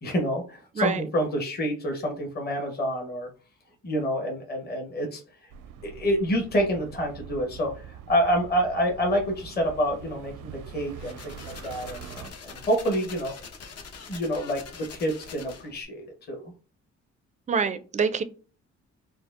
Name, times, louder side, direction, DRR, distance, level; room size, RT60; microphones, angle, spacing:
voice 1, 0.0-3.3 3.8-5.5 5.8-13.3 14.1-16.5, equal, 35° left, 1.0 m, -28 dB
sound 1, 5.5-12.3, right 8 dB, 80° right, 0.5 m, -44 dB
sound 2, 10.9-15.8, left 5 dB, 55° left, 0.7 m, -44 dB
voice 2, 17.5-18.2, right 5 dB, 25° right, 0.4 m, -25 dB
4.4 x 2.0 x 2.4 m
cardioid pair, 90°, 30 cm